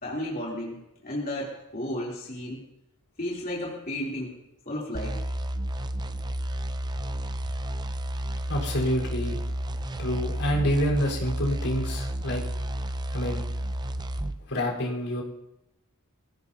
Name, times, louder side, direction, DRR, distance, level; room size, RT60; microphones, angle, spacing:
voice 1, 0.0-2.6 3.2-4.3 4.6-5.2, left 1 dB, 40° left, -5 dB, 3.0 m, -33 dB
sound 1, 4.9-14.4, right 1 dB, 20° right, 0.5 m, -31 dB
voice 2, 8.5-9.4 10.0-12.4 13.1-13.5 14.5-15.2, equal, 70° left, -2 dB, 4.1 m, -27 dB
24.5 x 16.0 x 2.8 m, 0.86 s
head